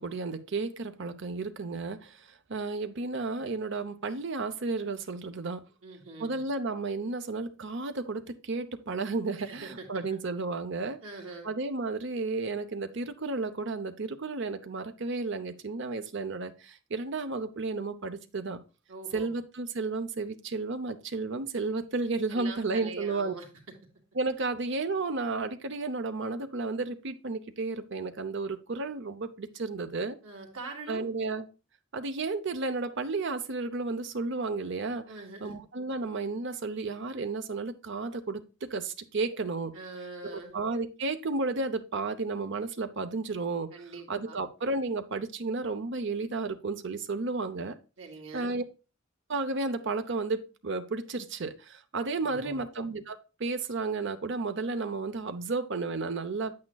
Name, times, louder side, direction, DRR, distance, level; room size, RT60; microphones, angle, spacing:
voice 1, 0.0-2.2 2.5-5.6 6.2-11.0 11.4-18.6 19.1-23.3 24.2-30.2 30.9-31.5 31.9-35.1 35.4-39.7 40.2-43.7 44.1-47.7 48.3-48.6 49.3-56.5, right 3 dB, 60° right, 0.8 m, -32 dB
voice 2, 5.8-6.4 9.4-10.0 11.0-11.5 18.9-19.3 22.3-23.7 30.2-31.0 35.1-35.6 39.7-40.6 43.7-44.4 48.0-48.6 52.1-52.6, right 3 dB, 90° right, 2.2 m, -43 dB
8.6 x 8.5 x 2.3 m
head